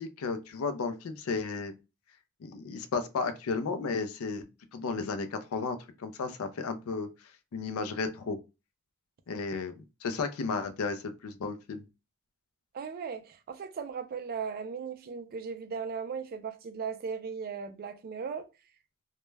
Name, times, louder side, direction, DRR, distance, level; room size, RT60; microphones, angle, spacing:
voice 1, 0.0-1.7 2.4-4.5 4.7-7.1 7.5-8.4 9.3-11.8, left 4 dB, 70° left, 0.4 m, -33 dB
voice 2, 12.7-18.5, right 6 dB, 45° right, 0.4 m, -37 dB
2.2 x 2.1 x 3.1 m
head